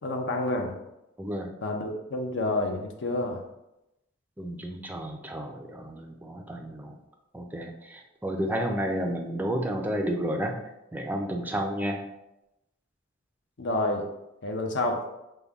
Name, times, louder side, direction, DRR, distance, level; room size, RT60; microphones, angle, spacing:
voice 1, 0.0-0.7 1.6-3.4 13.6-14.1 14.4-15.0, left 2 dB, 60° left, 3 dB, 0.6 m, -29 dB
voice 2, 1.2-1.5 4.4-6.9 7.3-7.7 8.2-10.5 10.9-12.0, equal, 10° right, 2 dB, 0.4 m, -31 dB
5.2 x 2.2 x 3.4 m, 0.91 s
head